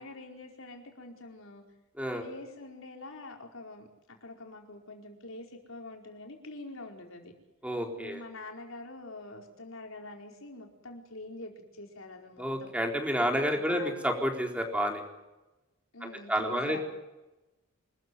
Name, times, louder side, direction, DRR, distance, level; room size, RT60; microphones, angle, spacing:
voice 1, 0.0-1.6 2.1-7.3 8.0-12.7 13.5-13.9 15.9-16.8, left 2 dB, 80° left, 2 dB, 4.7 m, -45 dB
voice 2, 7.6-8.2 12.4-15.0 16.0-16.8, equal, 5° right, 3 dB, 4.0 m, -30 dB
26.0 x 14.0 x 9.5 m, 1.0 s
head